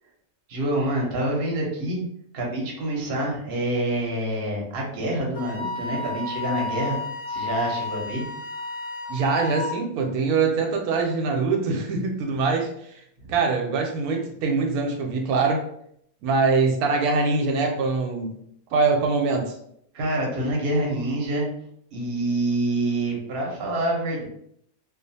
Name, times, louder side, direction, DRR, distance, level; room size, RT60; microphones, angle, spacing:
voice 1, 0.5-2.0 2.3-7.0 7.3-8.2 13.2-13.3 19.9-21.5 21.9-24.2, right 1 dB, 50° right, -2 dB, 0.8 m, -26 dB
Wind instrument woodwind instrument, 5.3-9.8, left 3 dB, 25° left, 0.5 m, -32 dB
voice 2, 9.1-13.0 13.3-15.6 16.2-18.4 18.7-19.5, right 4 dB, 90° right, 2 dB, 1.1 m, -23 dB
2.4 x 2.4 x 2.7 m, 0.70 s
omnidirectional pair, 1.5 m